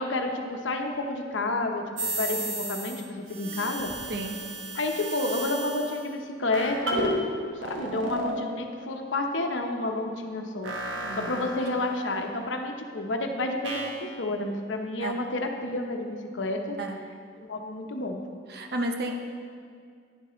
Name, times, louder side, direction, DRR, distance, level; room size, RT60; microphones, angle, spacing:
voice 1, 0.0-3.9 4.7-7.1 7.6-16.8 17.5-18.2, left 2 dB, 80° left, 3 dB, 0.9 m, -30 dB
sound 1, 2.0-3.0 3.3-6.0 6.5-7.2 7.6-8.4 10.6-12.2 13.6-14.0, right 1 dB, 75° right, 1.4 m, -33 dB
voice 2, 11.0-11.6 15.0-15.2 16.8-17.0 18.5-19.1, right 1 dB, 55° right, 3 dB, 0.8 m, -32 dB
11.0 x 10.5 x 3.1 m, 2.2 s
head